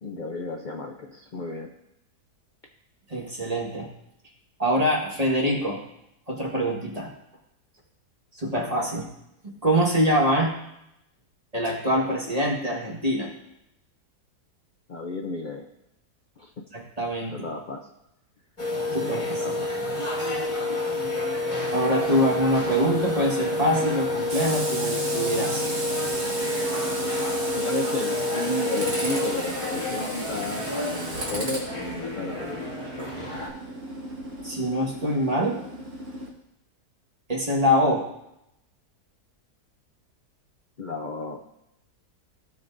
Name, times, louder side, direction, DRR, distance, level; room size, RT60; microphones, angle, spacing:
voice 1, 0.0-1.7 14.9-15.7 16.4-16.6 17.3-17.9 19.0-19.8 27.5-32.8 40.8-41.4, left 2 dB, 65° left, 1 dB, 0.4 m, -33 dB
voice 2, 3.1-3.9 4.6-5.8 6.3-7.1 8.3-9.1 9.4-10.5 11.5-13.3 16.7-17.3 18.9-19.5 21.7-25.6 34.4-35.6 37.3-38.0, equal, 25° right, -2 dB, 1.5 m, -24 dB
sound 1, 18.6-33.5, left 1 dB, 20° left, 1.4 m, -29 dB
Tools, 21.9-36.3, right 2 dB, 50° right, 2.0 m, -35 dB
16.0 x 5.8 x 2.6 m, 0.83 s
omnidirectional pair, 1.7 m